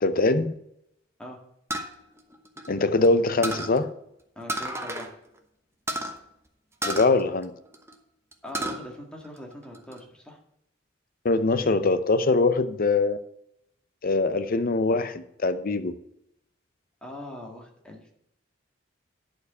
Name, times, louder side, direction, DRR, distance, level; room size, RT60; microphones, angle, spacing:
voice 1, 0.0-0.5 2.7-3.9 6.8-7.5 11.2-13.2 14.0-15.9, left 3 dB, 50° left, 12 dB, 0.7 m, -23 dB
sound 1, 1.7-3.1 3.4-3.8 4.5-5.1 5.4-5.5 5.9-6.1 6.8-7.9 8.3-8.8 9.2-10.0, right 1 dB, 15° right, 1.0 m, -32 dB
voice 2, 4.3-5.1 8.4-10.4 17.0-18.1, left 1 dB, 5° left, 0 dB, 1.7 m, -41 dB
11.0 x 4.6 x 6.7 m, 0.78 s
head